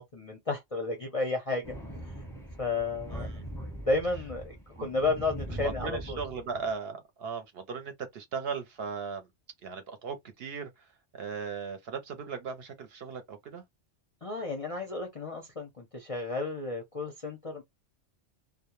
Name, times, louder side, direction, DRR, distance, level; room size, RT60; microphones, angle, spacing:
voice 1, 0.0-1.7 2.6-3.3 3.9-6.2 14.2-17.6, left 3 dB, 45° left, 0.5 m, -32 dB
Thunder, 1.6-6.7, right 1 dB, 5° left, 0.6 m, -41 dB
voice 2, 3.1-3.5 5.5-9.3 9.6-13.6, right 5 dB, 65° right, 0.7 m, -38 dB
2.1 x 2.1 x 2.9 m
omnidirectional pair, 1.2 m